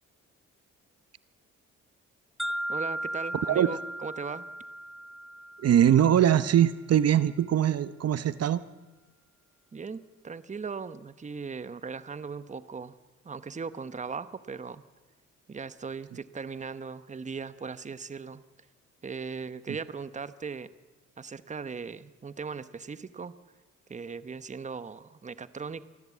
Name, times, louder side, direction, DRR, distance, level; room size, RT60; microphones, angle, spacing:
sound 1, 2.4-6.4, right 1 dB, ahead, 1.5 m, -36 dB
voice 1, 2.7-4.4 9.7-13.0 13.2-14.8 15.5-18.4 19.0-20.7 21.2-23.4 23.9-25.8, right 5 dB, 25° right, 15 dB, 1.0 m, -38 dB
voice 2, 3.3-3.7 5.6-8.6, right 10 dB, 55° right, 15 dB, 0.9 m, -22 dB
24.5 x 14.5 x 8.5 m, 1.2 s
cardioid pair, 90°, 30 cm